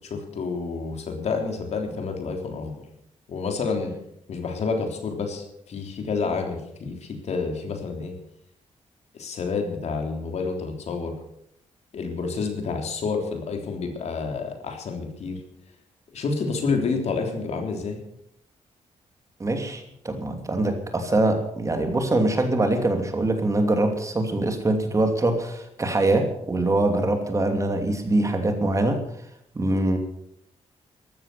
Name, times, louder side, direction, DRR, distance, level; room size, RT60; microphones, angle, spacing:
voice 1, 0.1-2.9 3.3-3.9 4.3-8.1 9.1-11.1 11.9-15.4 16.1-18.0, left 4 dB, 65° left, 3 dB, 3.5 m, -29 dB
voice 2, 19.4-29.0 29.5-30.0, right 2 dB, 25° right, 5 dB, 2.8 m, -23 dB
14.5 x 12.5 x 6.8 m, 0.74 s
cardioid pair, 110°, 12 cm